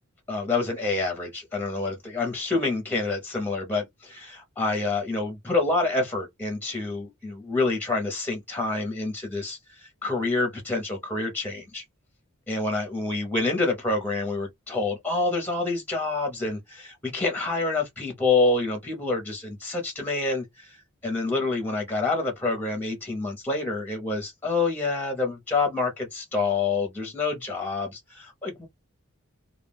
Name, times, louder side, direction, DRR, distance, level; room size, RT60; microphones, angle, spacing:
voice 1, 0.3-11.8 12.5-28.7, left 3 dB, 10° left, 0.7 m, -27 dB
2.2 x 2.2 x 3.3 m
head